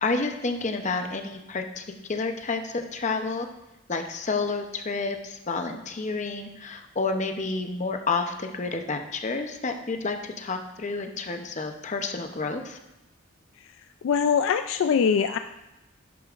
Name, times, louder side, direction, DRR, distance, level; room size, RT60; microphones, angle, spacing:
voice 1, 0.0-1.8 2.1-3.5 3.9-12.8, left 3 dB, 35° left, 5 dB, 0.6 m, -30 dB
voice 2, 14.0-15.4, left 6 dB, 70° left, 9 dB, 0.3 m, -22 dB
11.0 x 6.8 x 2.4 m, 0.93 s
head